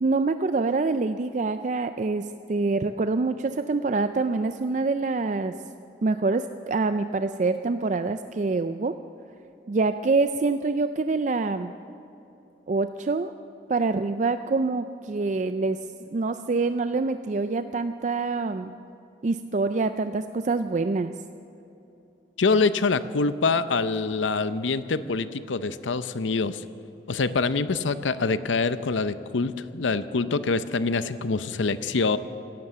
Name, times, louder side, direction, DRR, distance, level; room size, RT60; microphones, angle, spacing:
voice 1, 0.0-5.5 6.0-8.9 9.7-11.7 12.7-13.3 13.7-15.8 16.1-18.7 19.2-21.1, right 3 dB, 40° right, 10 dB, 0.4 m, -25 dB
voice 2, 22.4-26.6 27.1-32.2, left 4 dB, 85° left, 13 dB, 0.7 m, -25 dB
17.0 x 12.0 x 6.8 m, 2.9 s
head